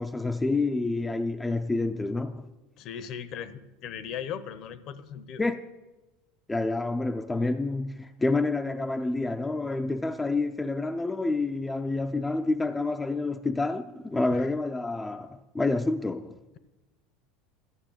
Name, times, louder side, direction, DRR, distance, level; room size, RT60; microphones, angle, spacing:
voice 1, 0.0-2.4 5.4-5.6 6.5-16.3, left 2 dB, 10° left, 0.4 m, -28 dB
voice 2, 2.8-5.4 14.3-14.5, left 8 dB, 50° left, 0.8 m, -38 dB
12.5 x 6.9 x 8.9 m
supercardioid pair, 140°, 0 cm